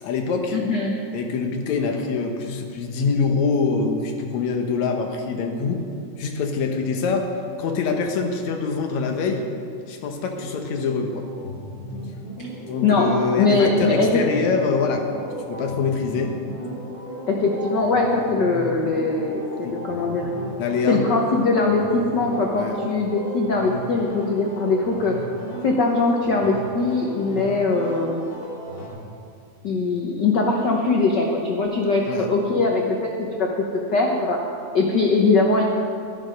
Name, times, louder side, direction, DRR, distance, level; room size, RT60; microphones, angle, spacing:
voice 1, 0.0-0.6 1.1-5.8 6.2-7.3 7.6-9.5 9.9-11.2 12.7-16.3 19.6-19.8 20.6-21.0 22.3-22.8 32.1-32.3, left 4 dB, 70° left, 3 dB, 2.3 m, -24 dB
voice 2, 0.5-0.9 12.4-12.5 12.8-13.1 13.4-14.2 17.3-20.3 20.9-25.2 25.6-28.3 29.6-34.4 34.7-35.6, left 3 dB, 90° left, 0 dB, 0.9 m, -21 dB
sound 1, 10.3-28.9, equal, 35° left, 4.0 m, -36 dB
11.5 x 11.0 x 5.2 m, 2.4 s
omnidirectional pair, 3.4 m